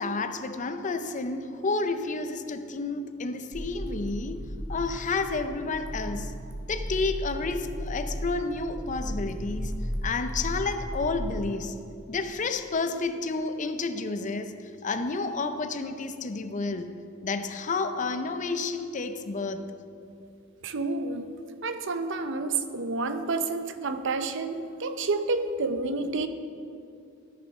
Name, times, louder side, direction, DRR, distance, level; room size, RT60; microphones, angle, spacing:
voice 1, 0.0-4.4 4.7-6.3 6.7-9.7 10.0-11.7 12.1-14.5 14.8-16.9 17.2-19.6, left 3 dB, 40° left, 9 dB, 0.6 m, -30 dB
sound 1, 3.5-11.4, equal, 10° right, 1.1 m, -35 dB
voice 2, 20.6-26.3, right 3 dB, 65° right, 9 dB, 0.6 m, -29 dB
13.5 x 6.5 x 5.4 m, 2.5 s
head